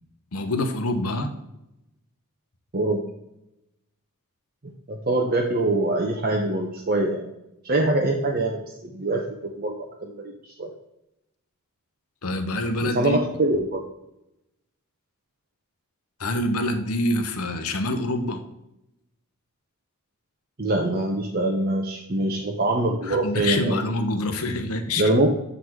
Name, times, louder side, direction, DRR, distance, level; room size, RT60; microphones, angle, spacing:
voice 1, 0.3-1.3 12.2-13.2 16.2-18.4 23.0-25.1, left 1 dB, 80° left, 7 dB, 0.9 m, -26 dB
voice 2, 2.7-3.0 4.9-7.3 7.6-9.7 10.0-10.7 12.8-13.8 20.6-23.8 25.0-25.3, right 2 dB, 40° right, 0 dB, 0.8 m, -24 dB
8.0 x 4.0 x 4.6 m, 0.86 s
head